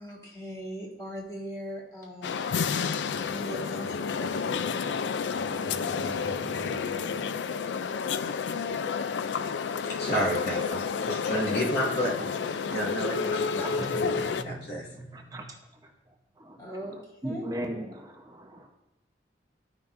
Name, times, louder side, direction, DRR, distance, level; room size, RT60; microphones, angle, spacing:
voice 1, 0.0-2.7 3.3-4.9 10.0-10.2 13.6-13.7 16.6-17.4, equal, 20° left, -4 dB, 2.0 m, -40 dB
sound 1, 2.2-14.4, left 6 dB, 85° left, 0.4 m, -30 dB
voice 2, 5.0-7.6 8.6-8.8 9.4-9.6 11.0-11.1 12.6-12.7 14.4-14.6 14.9-15.5 16.4-16.6 17.2-18.7, right 1 dB, 20° right, 2 dB, 0.8 m, -39 dB
voice 3, 10.0-13.6 13.9-14.9, equal, 65° left, -4 dB, 2.2 m, -31 dB
13.5 x 5.8 x 2.6 m, 0.98 s
head